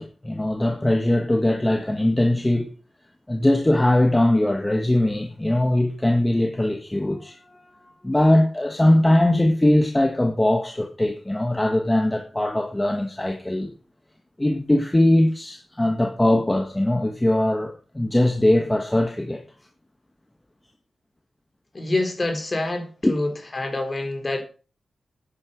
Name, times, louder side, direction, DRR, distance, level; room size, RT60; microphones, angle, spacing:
voice 1, 0.0-2.7 3.3-7.4 8.0-13.7 14.4-19.4 23.0-23.1, left 1 dB, 15° left, 1.7 m, -21 dB
voice 2, 21.7-24.4, left 2 dB, 35° left, 4.3 m, -26 dB
11.0 x 9.8 x 5.4 m
cardioid pair, 65°, 0 cm